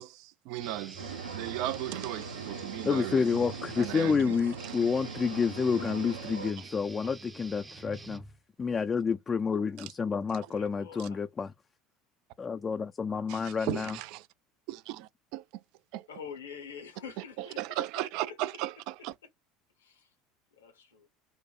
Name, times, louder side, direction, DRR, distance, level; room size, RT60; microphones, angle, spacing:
voice 1, 0.0-3.2 3.8-4.3 11.0-11.1 13.3-14.2 14.7-15.4 15.9-16.1 17.4-19.1, right 14 dB, 55° right, 0.3 m, -36 dB
Guitar, 0.6-8.6, right 3 dB, 20° right, 0.6 m, -47 dB
sound 1, 1.0-6.5, right 6 dB, 75° right, 0.8 m, -40 dB
voice 2, 2.8-8.2 8.6-11.5 12.4-14.0, left 5 dB, 25° left, 0.3 m, -29 dB
voice 3, 10.5-11.2 16.1-18.4 19.8-20.1 20.5-21.1, left 6 dB, 75° left, 0.9 m, -46 dB
5.0 x 2.0 x 2.3 m
figure-of-eight pair, 70°, 0 cm